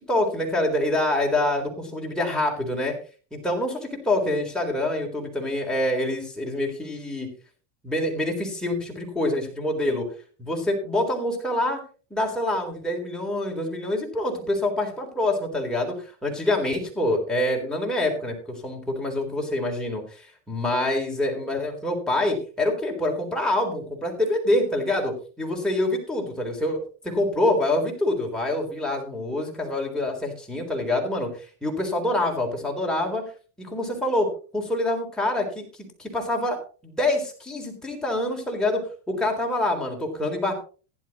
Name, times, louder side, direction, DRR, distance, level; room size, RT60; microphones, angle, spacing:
voice 1, 0.1-2.9 3.3-7.3 7.8-10.1 10.4-11.8 12.1-33.2 33.6-35.6 36.0-40.5, left 1 dB, ahead, -1 dB, 3.9 m, -26 dB
15.0 x 11.0 x 3.0 m, 0.38 s
supercardioid pair, 115°, 37 cm